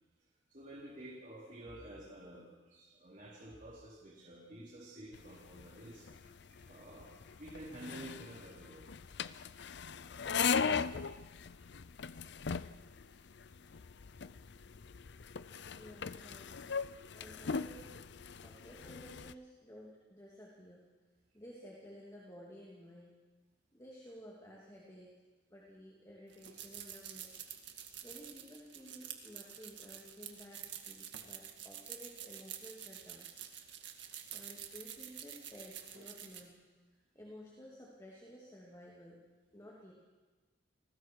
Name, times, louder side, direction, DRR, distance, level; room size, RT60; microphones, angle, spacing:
voice 1, 0.5-8.9 11.6-11.7 12.0-12.4 13.1-13.5, right 1 dB, 40° right, -6 dB, 3.9 m, -51 dB
sound 1, 5.1-19.3, left 6 dB, 60° left, 0.6 m, -39 dB
voice 2, 15.7-16.5 17.1-18.0 18.4-20.9 21.3-23.1 23.7-25.1 25.5-27.4 28.0-33.3 34.3-36.6 37.1-39.2 39.5-39.9, equal, 15° left, -4 dB, 2.7 m, -54 dB
sound 2, 26.3-36.4, right 10 dB, 60° right, 2.0 m, -48 dB
30.0 x 19.5 x 4.7 m, 1.3 s
head